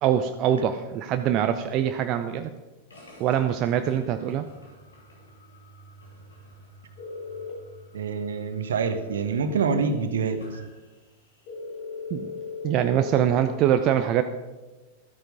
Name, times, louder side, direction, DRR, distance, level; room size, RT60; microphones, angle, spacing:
voice 1, 0.0-2.5 3.2-4.5 12.1-12.3 12.6-14.2, right 10 dB, 35° right, 8 dB, 0.6 m, -23 dB
sound 1, 2.9-11.6, right 1 dB, 70° left, 3.3 m, -51 dB
sound 2, 7.0-7.5 11.5-13.3, left 5 dB, 45° left, 3.3 m, -36 dB
voice 2, 7.9-10.4, right 5 dB, 65° right, 9 dB, 1.2 m, -26 dB
13.0 x 9.1 x 5.3 m, 1.2 s
figure-of-eight pair, 90°, 0 cm